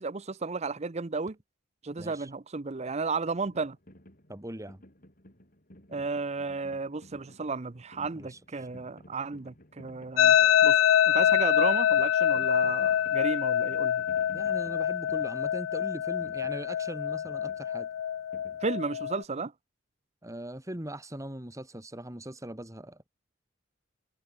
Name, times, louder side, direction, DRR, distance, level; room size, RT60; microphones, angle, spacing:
voice 1, 0.0-1.4 1.8-3.8 5.9-10.4 10.6-14.0 18.6-19.5, right 4 dB, 35° right, 0.7 m, -33 dB
voice 2, 2.0-2.3 4.3-4.8 8.2-8.7 14.3-17.9 20.2-23.1, right 1 dB, 15° right, 2.4 m, -41 dB
sound 1, 3.4-19.2, equal, 45° left, 7.0 m, -55 dB
sound 2, 10.2-19.2, left 10 dB, 85° left, 0.3 m, -25 dB
head